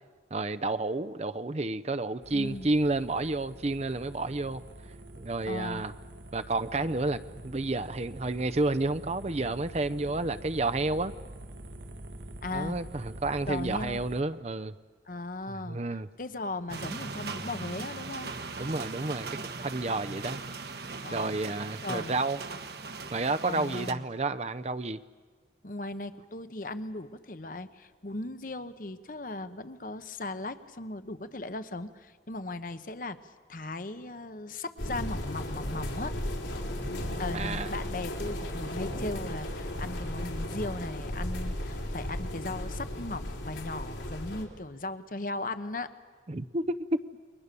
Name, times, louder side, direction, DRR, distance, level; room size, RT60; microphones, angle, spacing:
voice 1, 0.3-4.6 5.2-5.9 6.3-11.1 12.5-14.7 15.5-16.1 18.6-19.3 19.6-20.4 21.0-22.4 23.1-25.0 36.7-36.9 37.3-37.7 46.3-46.7, right 2 dB, 35° right, 11 dB, 0.6 m, -30 dB
sound 1, 2.2-14.2, right 1 dB, 75° right, 1.9 m, -45 dB
voice 2, 2.3-2.7 5.5-5.8 12.4-12.8 13.5-14.0 15.1-15.8 16.2-18.3 21.0-21.3 21.8-22.1 23.5-24.0 25.6-33.2 33.5-36.2 37.2-45.9, left 2 dB, 50° left, 11 dB, 1.1 m, -37 dB
sound 2, 16.7-23.9, right 4 dB, 60° right, 1.4 m, -39 dB
sound 3, 34.8-44.4, left 1 dB, 85° left, 4.1 m, -35 dB
29.0 x 23.0 x 6.9 m, 1.5 s
head